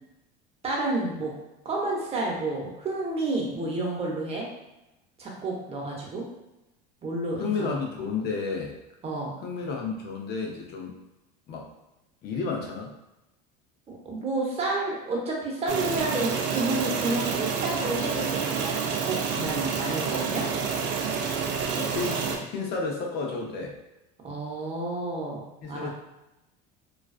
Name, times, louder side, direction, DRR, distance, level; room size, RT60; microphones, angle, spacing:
voice 1, 0.6-1.3 1.6-4.5 5.2-6.3 7.0-7.8 9.0-9.3 14.0-20.4 24.2-25.9, right 2 dB, 30° right, -2 dB, 0.8 m, -30 dB
voice 2, 7.4-8.8 9.4-11.0 11.5-11.7 12.2-12.9 21.7-23.8 25.6-25.9, left 4 dB, 50° left, 1 dB, 0.6 m, -32 dB
sound 1, 15.7-22.4, right 6 dB, 60° right, 0.4 m, -28 dB
2.4 x 2.3 x 2.4 m, 0.95 s
supercardioid pair, 100°, 21 cm